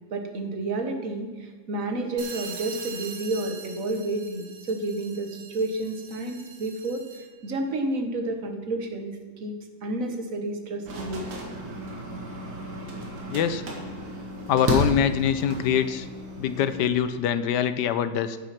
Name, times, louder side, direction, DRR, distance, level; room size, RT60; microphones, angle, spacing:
voice 1, 0.1-9.5 9.8-11.2, right 2 dB, 50° right, 5 dB, 1.5 m, -30 dB
sound 1, 2.2-7.4, right 5 dB, 65° right, 1.7 m, -42 dB
sound 2, 10.8-16.8, right 1 dB, 80° right, 2.4 m, -33 dB
voice 2, 13.3-13.6 14.5-16.1 16.4-18.4, left 9 dB, 75° left, 12 dB, 1.1 m, -24 dB
10.0 x 7.8 x 5.9 m, 1.4 s
omnidirectional pair, 2.1 m